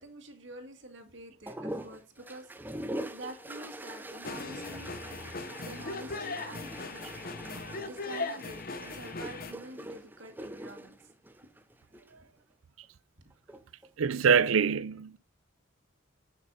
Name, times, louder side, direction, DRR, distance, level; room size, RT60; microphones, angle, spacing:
voice 1, 0.0-2.8 3.1-4.9 5.6-7.0 7.4-11.0, right 2 dB, 60° right, 2.2 m, -47 dB
sound 1, 1.5-12.1 13.3-13.9, right 1 dB, 10° right, 0.6 m, -43 dB
sound 2, 4.2-9.5, left 3 dB, 45° left, 1.0 m, -39 dB
voice 2, 14.0-15.2, right 6 dB, 75° right, 0.5 m, -24 dB
10.0 x 5.9 x 5.5 m
head